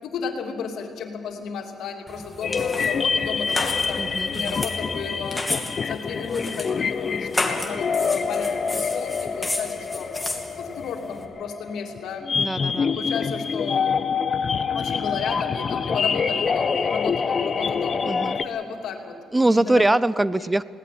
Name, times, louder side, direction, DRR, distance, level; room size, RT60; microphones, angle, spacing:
voice 1, 0.0-5.4 5.8-10.1 10.6-12.2 12.8-14.0 14.7-19.8 20.4-20.5, left 6 dB, 80° left, 2 dB, 2.9 m, -33 dB
sound 1, 2.1-11.2, left 2 dB, 10° left, 2.7 m, -33 dB
sound 2, 2.4-18.4, left 5 dB, 45° left, 0.9 m, -26 dB
voice 2, 4.0-4.6 12.4-12.9 18.1-18.4 19.3-20.6, right 2 dB, 15° right, 18 dB, 0.5 m, -22 dB
20.5 x 18.0 x 7.7 m, 2.5 s
cardioid pair, 90°, 0 cm